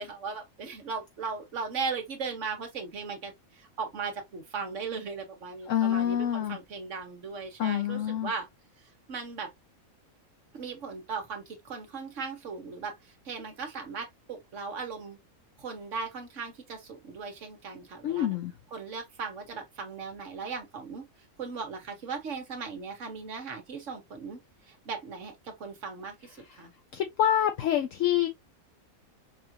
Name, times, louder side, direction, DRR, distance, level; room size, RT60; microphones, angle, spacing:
voice 1, 0.0-8.5 8.8-9.5 10.5-15.2 15.6-18.4 18.7-21.1 21.4-26.7, right 5 dB, 60° right, 1.5 m, -38 dB
voice 2, 5.7-6.6 7.6-8.3 18.0-18.5 26.9-28.3, left 11 dB, 70° left, 0.9 m, -26 dB
5.4 x 2.5 x 2.8 m
omnidirectional pair, 1.5 m